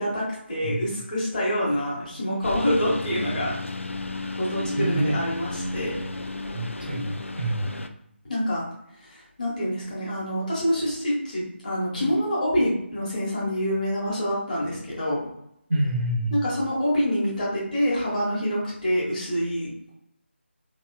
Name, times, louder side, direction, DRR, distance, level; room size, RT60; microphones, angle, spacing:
voice 1, 0.0-3.6 4.3-6.0 8.3-8.6 9.0-15.3 16.3-19.9, equal, 40° left, -6 dB, 1.2 m, -26 dB
Engine, 2.4-7.9, left 2 dB, 85° left, 0.3 m, -33 dB
voice 2, 4.8-5.2 6.5-7.7 11.9-12.1 15.7-16.4, right 1 dB, 45° right, 0 dB, 0.7 m, -27 dB
3.0 x 2.7 x 2.3 m, 0.75 s
figure-of-eight pair, 160°, 7 cm